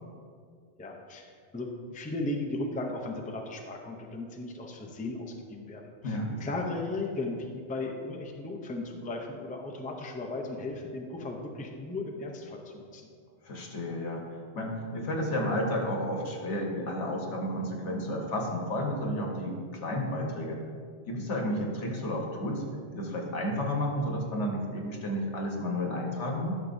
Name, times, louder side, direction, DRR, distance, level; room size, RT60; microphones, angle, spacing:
voice 1, 0.8-13.0, left 2 dB, 10° left, 1 dB, 0.4 m, -36 dB
voice 2, 6.0-6.4 13.4-20.6 21.1-22.6 22.9-26.5, left 1 dB, 85° left, 0 dB, 1.4 m, -32 dB
11.0 x 5.9 x 2.6 m, 2.2 s
omnidirectional pair, 1.2 m